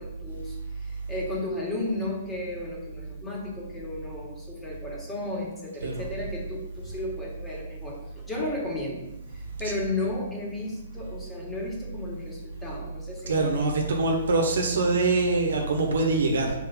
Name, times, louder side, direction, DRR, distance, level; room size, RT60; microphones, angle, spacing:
voice 1, 0.0-13.7, left 2 dB, 10° left, -3 dB, 2.2 m, -34 dB
voice 2, 13.3-16.5, right 3 dB, 60° right, 2 dB, 1.4 m, -24 dB
5.9 x 4.6 x 6.2 m, 0.98 s
figure-of-eight pair, 120°, 0 cm